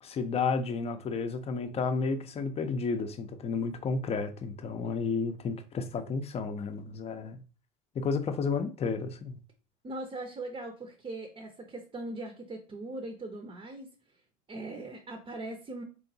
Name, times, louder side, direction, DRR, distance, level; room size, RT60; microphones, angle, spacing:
voice 1, 0.0-7.4 7.9-9.4, left 4 dB, 30° left, 0.6 m, -32 dB
voice 2, 9.8-13.9 14.5-15.8, right 2 dB, 25° right, 0.7 m, -40 dB
3.6 x 3.1 x 2.7 m
hypercardioid pair, 90°, 20 cm